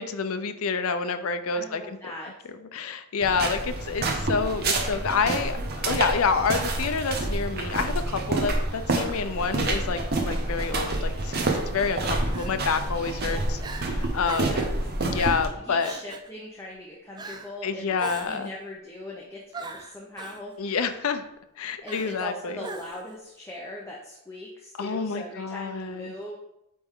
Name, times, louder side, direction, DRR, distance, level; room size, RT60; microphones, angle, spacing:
voice 1, 0.0-2.0 2.7-13.6 13.9-14.7 15.0-15.9 17.6-18.5 20.6-21.2 21.6-22.6 24.8-26.1, left 5 dB, 70° left, 9 dB, 0.5 m, -28 dB
voice 2, 1.5-2.5 13.2-13.5 14.4-14.7 15.6-20.5 21.8-26.4, left 1 dB, 10° left, -3 dB, 0.7 m, -40 dB
sound 1, 3.2-15.5, right 2 dB, 45° right, 0.9 m, -28 dB
Crying sobbing, 10.8-11.1 12.3-12.8 13.3-13.4 13.6-13.9 14.3-14.7 15.1-15.5 15.8-16.3 17.2-17.5 18.0-18.5 19.5-20.4 21.9-22.3 22.6-23.1, right 3 dB, 20° right, 0.4 m, -40 dB
8.5 x 3.4 x 3.6 m, 0.84 s
head